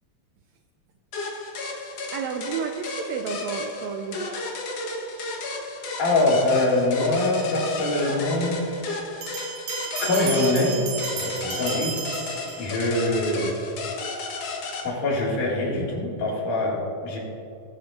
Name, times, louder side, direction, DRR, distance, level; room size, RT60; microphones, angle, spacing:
sound 1, 1.1-14.8, left 3 dB, 60° left, 2.1 m, -33 dB
voice 1, 2.1-4.4, right 6 dB, 80° right, 5 dB, 1.6 m, -31 dB
voice 2, 6.0-8.8 10.0-10.8 11.2-12.0 12.6-13.6 14.8-17.2, left 2 dB, 75° left, -4 dB, 3.7 m, -24 dB
Bell, 9.2-13.0, right 6 dB, 65° right, 1.8 m, -33 dB
21.0 x 8.5 x 2.5 m, 2.6 s
omnidirectional pair, 3.6 m